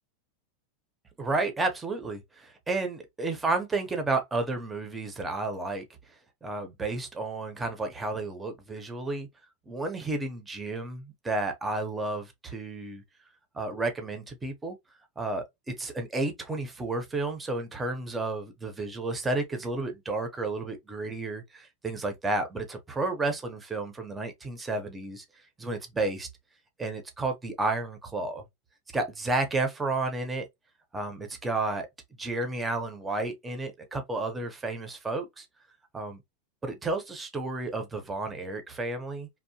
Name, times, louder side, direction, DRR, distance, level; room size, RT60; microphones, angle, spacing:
voice 1, 1.2-5.8 6.4-9.3 9.7-13.0 13.5-14.8 15.2-25.2 25.6-26.3 26.8-28.4 28.9-30.4 30.9-31.9 32.2-35.5 35.9-36.2 36.6-39.3, right 2 dB, 10° right, 0.6 m, -31 dB
2.7 x 2.0 x 2.6 m
supercardioid pair, 160°, 0 cm